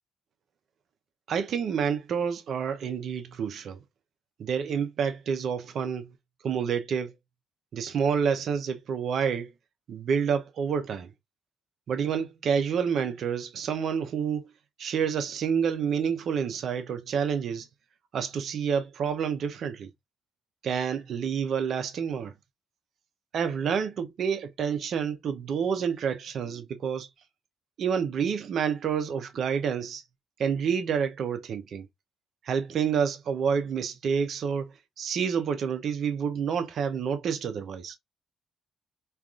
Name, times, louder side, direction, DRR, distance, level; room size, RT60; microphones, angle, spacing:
voice 1, 1.3-3.8 4.4-6.1 6.4-7.1 7.7-9.5 9.9-11.1 11.9-14.4 14.8-17.7 18.1-19.9 20.6-22.3 23.3-27.1 27.8-30.0 30.4-31.9 32.4-38.0, right 7 dB, 65° right, 0.6 m, -28 dB
3.4 x 2.4 x 2.4 m
cardioid pair, 90°, 0 cm